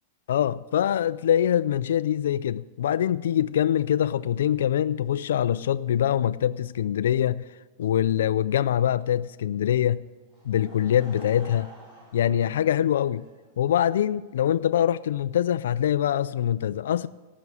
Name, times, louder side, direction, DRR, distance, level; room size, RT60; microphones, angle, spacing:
voice 1, 0.3-7.5 7.8-10.1 10.5-11.7 12.1-13.2 13.6-17.1, left 10 dB, 80° left, 0.3 m, -24 dB
Laughter / Crowd, 10.3-13.8, right 2 dB, 15° right, 4.9 m, -50 dB
14.0 x 6.1 x 9.5 m
supercardioid pair, 175°, 0 cm